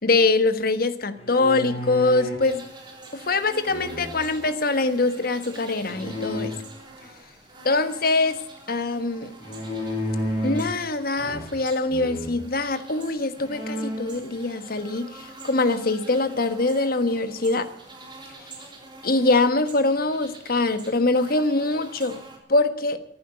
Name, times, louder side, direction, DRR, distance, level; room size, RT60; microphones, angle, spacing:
voice 1, 0.0-2.6 3.1-6.5 7.6-8.4 8.7-9.3 10.4-17.7 19.0-22.2 22.5-23.0, left 3 dB, 55° left, 10 dB, 1.4 m, -23 dB
sound 1, 1.2-2.5 3.7-4.4 5.9-6.5 9.4-10.8 11.2-11.6 11.9-12.3 12.9-13.0 13.4-14.1, left 1 dB, 35° left, 6.8 m, -31 dB
sound 2, 2.4-22.4, right 2 dB, 25° right, 3.6 m, -45 dB
14.5 x 11.0 x 8.0 m, 0.70 s
head